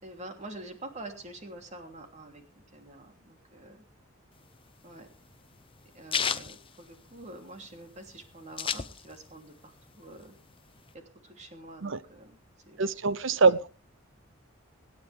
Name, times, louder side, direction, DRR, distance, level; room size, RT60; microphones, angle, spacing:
voice 1, 0.0-2.4 2.7-3.8 4.8-5.1 5.9-10.3 11.2-12.4 12.6-12.9 13.3-13.4, right 2 dB, 35° right, 3.0 m, -46 dB
sound 1, 4.4-7.5 7.9-8.0 8.1-9.4 9.8-10.9, left 7 dB, 25° left, 0.7 m, -33 dB
voice 2, 12.8-13.7, right 4 dB, 65° right, 0.8 m, -24 dB
25.5 x 9.6 x 3.5 m
head